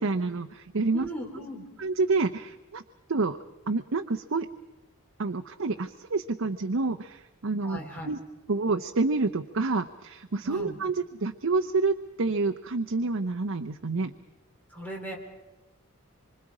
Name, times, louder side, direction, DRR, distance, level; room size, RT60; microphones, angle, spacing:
voice 1, 0.0-1.1 1.8-2.8 3.1-3.4 3.7-4.5 5.2-7.8 8.0-8.2 8.5-14.1, right 3 dB, 70° right, 7 dB, 0.7 m, -28 dB
voice 2, 0.9-1.6 7.6-8.1 10.4-10.8 14.7-15.2, right 1 dB, 5° left, -1 dB, 4.0 m, -38 dB
26.0 x 25.0 x 4.9 m, 1.0 s
head